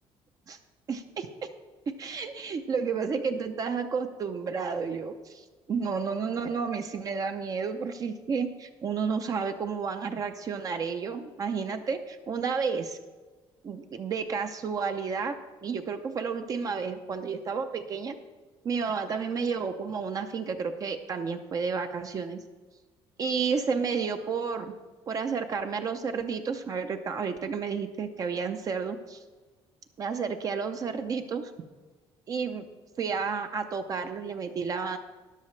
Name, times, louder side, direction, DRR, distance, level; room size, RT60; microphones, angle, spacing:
voice 1, 0.9-1.3 1.9-13.0 13.6-15.3 15.6-18.2 18.6-22.4 23.2-24.7 25.1-29.2 30.0-31.5 32.3-32.6 33.0-35.0, right 5 dB, 35° right, 7 dB, 0.6 m, -31 dB
13.0 x 10.5 x 3.2 m, 1.3 s
cardioid pair, 160°, 11 cm